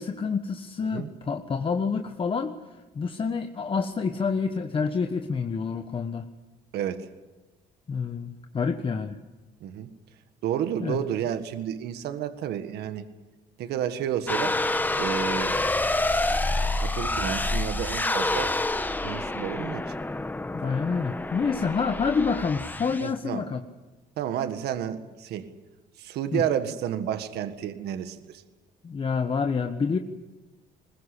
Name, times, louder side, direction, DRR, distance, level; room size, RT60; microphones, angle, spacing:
voice 1, 0.0-2.5 2.9-6.3 7.9-9.2 10.8-11.0 20.5-23.6 26.3-26.4 28.8-30.0, left 5 dB, 30° left, 6 dB, 1.3 m, -28 dB
voice 2, 6.7-7.1 9.6-9.9 10.4-13.1 13.6-14.6 15.0-15.8 16.3-18.5 19.0-19.9 21.6-21.7 23.0-23.4 24.2-25.5 26.0-28.4, right 10 dB, 75° right, 9 dB, 1.7 m, -31 dB
sound 1, 14.3-23.1, left 2 dB, 10° left, 1.1 m, -28 dB
21.0 x 21.0 x 8.5 m, 1.2 s
cardioid pair, 110°, 17 cm